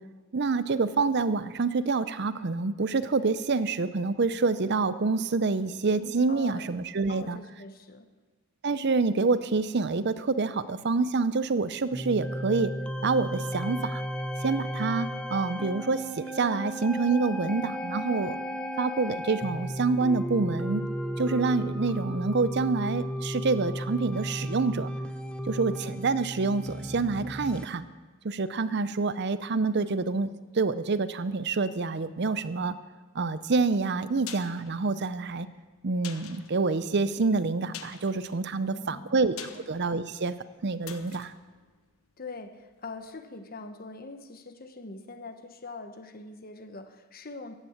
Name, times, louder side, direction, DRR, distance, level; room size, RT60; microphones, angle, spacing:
voice 1, 0.3-7.4 8.6-12.7 13.0-14.0 14.4-18.4 18.8-20.8 21.2-24.9 25.5-27.9 28.2-32.7 33.1-35.5 35.8-40.3 40.6-41.3, right 4 dB, 50° right, 14 dB, 0.6 m, -27 dB
voice 2, 6.3-6.6 7.1-8.1 38.6-39.6 42.2-47.5, left 3 dB, 40° left, 8 dB, 1.3 m, -43 dB
sound 1, 11.9-27.7, equal, 5° left, 0.8 m, -34 dB
sound 2, 34.2-42.7 43.0-43.1, left 9 dB, 75° left, 1.2 m, -48 dB
15.5 x 10.5 x 7.2 m, 1.3 s
head